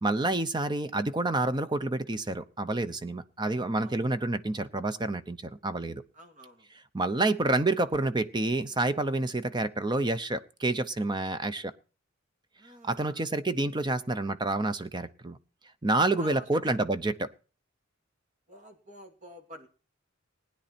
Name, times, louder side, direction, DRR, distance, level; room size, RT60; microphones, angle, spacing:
voice 1, 0.0-6.0 6.9-11.7 12.8-15.4 15.8-17.3, right 2 dB, 20° right, 0.8 m, -28 dB
voice 2, 3.8-4.1 6.1-6.7 12.6-13.3 16.2-16.8 18.5-19.7, equal, 40° right, 2.6 m, -49 dB
19.5 x 9.9 x 4.4 m
head